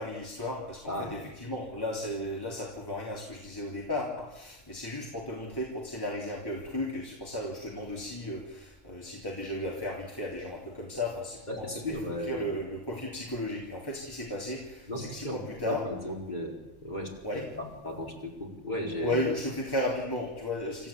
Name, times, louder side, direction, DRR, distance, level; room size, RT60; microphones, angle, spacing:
voice 1, 0.0-15.9 17.2-17.5 19.0-20.9, left 1 dB, 15° left, -2 dB, 3.3 m, -35 dB
voice 2, 11.5-12.4 14.9-19.2, left 1 dB, 35° left, -1 dB, 4.8 m, -36 dB
27.5 x 14.5 x 8.7 m, 0.93 s
omnidirectional pair, 1.3 m